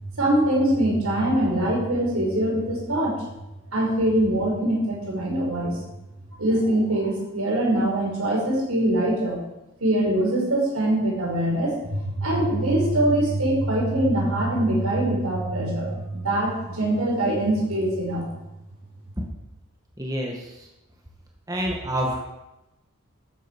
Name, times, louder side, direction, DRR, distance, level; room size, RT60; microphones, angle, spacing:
voice 1, 0.1-3.2 3.7-5.8 6.4-9.4 9.8-18.3, right 1 dB, 85° right, -3 dB, 5.7 m, -23 dB
voice 2, 20.0-20.5 21.5-22.3, equal, 15° right, -1 dB, 1.7 m, -27 dB
12.5 x 9.0 x 6.3 m, 0.96 s
head